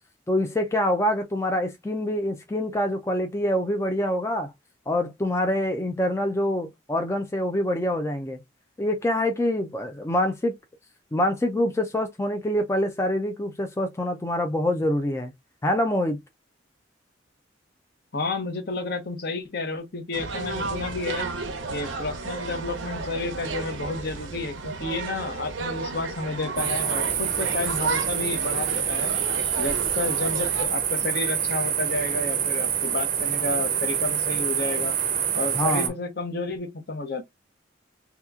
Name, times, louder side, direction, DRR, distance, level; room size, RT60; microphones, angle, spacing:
voice 1, 0.3-4.5 4.9-8.4 8.8-10.5 11.1-15.3 15.6-16.2 35.5-35.9, left 1 dB, 15° left, 0.4 m, -25 dB
voice 2, 18.1-21.3 21.7-29.1 29.6-35.0 35.3-37.2, left 3 dB, 55° left, 0.8 m, -31 dB
sound 1, 20.1-30.7, right 4 dB, 90° right, 0.7 m, -33 dB
sound 2, 26.6-35.9, right 8 dB, 45° right, 0.6 m, -26 dB
2.9 x 2.3 x 3.5 m
head